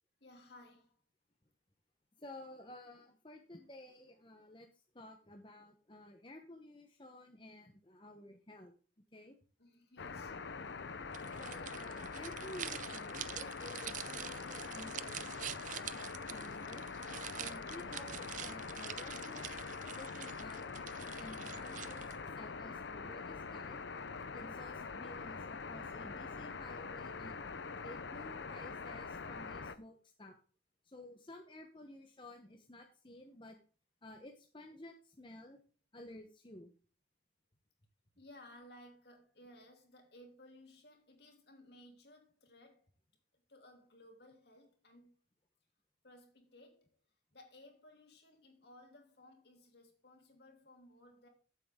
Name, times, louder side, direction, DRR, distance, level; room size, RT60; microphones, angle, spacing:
voice 1, 0.2-1.0 9.6-10.4 38.2-42.9 43.3-45.1 46.0-47.0 47.3-51.3, left 1 dB, 60° left, 3.0 m, -59 dB
voice 2, 2.2-4.7 4.9-8.7 9.1-9.4 11.4-16.9 17.4-20.6 21.0-23.8 24.3-27.3 27.8-30.3 30.8-33.6 34.0-35.6 35.9-36.7, left 1 dB, 25° left, 1.0 m, -53 dB
sound 1, 10.0-29.8, left 4 dB, 75° left, 0.8 m, -44 dB
sound 2, 11.1-22.3, right 10 dB, 45° right, 0.5 m, -47 dB
14.5 x 7.7 x 3.7 m
head